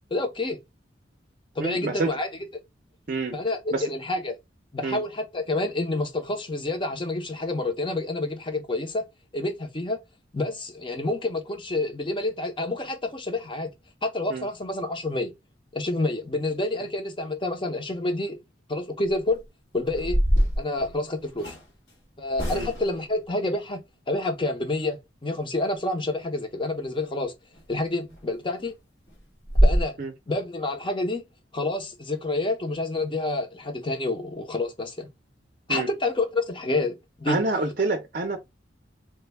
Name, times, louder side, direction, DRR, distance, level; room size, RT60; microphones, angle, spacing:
voice 1, 0.1-0.6 1.6-2.3 3.3-4.4 4.7-9.0 9.3-10.0 10.3-13.7 14.0-15.3 15.7-18.4 18.7-19.4 19.7-20.2 20.6-21.6 22.2-23.8 24.1-27.3 27.7-28.7 29.6-30.0 30.3-31.2 31.5-35.1 35.7-37.4, left 2 dB, 25° left, 0.7 m, -28 dB
voice 2, 1.6-2.1 3.1-3.4 3.7-3.9 4.8-5.0 14.3-14.5 22.5-22.7 30.0-30.1 35.7-35.9 37.3-38.4, right 2 dB, 50° right, 0.5 m, -27 dB
sound 1, 19.0-19.3 19.9-21.7 22.3-23.0 27.5-27.7 28.1-28.2 28.6-28.7 29.1-29.2 29.5-29.8, equal, 70° left, 1.8 m, -23 dB
3.2 x 2.2 x 3.3 m
head